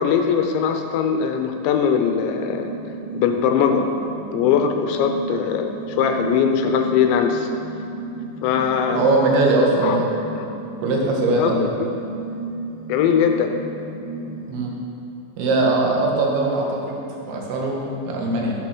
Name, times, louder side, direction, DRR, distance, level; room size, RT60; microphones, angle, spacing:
voice 1, 0.0-2.7 3.1-3.9 4.3-7.5 8.4-9.1 9.8-10.0 10.4-10.5 11.4-11.9 12.9-13.5, left 7 dB, 80° left, 5 dB, 2.8 m, -21 dB
sound 1, 2.2-14.5, right 3 dB, 45° right, 1.5 m, -33 dB
voice 2, 8.9-10.1 10.8-11.6 14.5-14.7 15.4-17.0 17.3-18.5, right 2 dB, 65° right, -1 dB, 3.3 m, -20 dB
13.5 x 7.7 x 6.1 m, 2.8 s
omnidirectional pair, 5.5 m